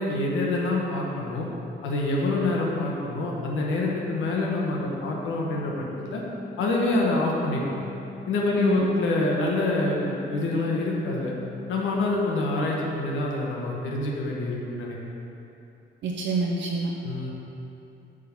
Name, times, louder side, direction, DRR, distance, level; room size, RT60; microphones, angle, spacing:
voice 1, 0.0-1.5 1.8-6.2 6.6-7.8 8.3-11.3 11.7-15.1 17.0-17.3, left 2 dB, 80° left, -2 dB, 1.2 m, -26 dB
sound 1, 4.0-12.9, left 3 dB, 20° left, 0.4 m, -42 dB
voice 2, 8.6-8.9 16.0-16.9, right 3 dB, 65° right, -2 dB, 0.8 m, -26 dB
8.3 x 3.8 x 5.9 m, 2.8 s
cardioid pair, 90°, 20 cm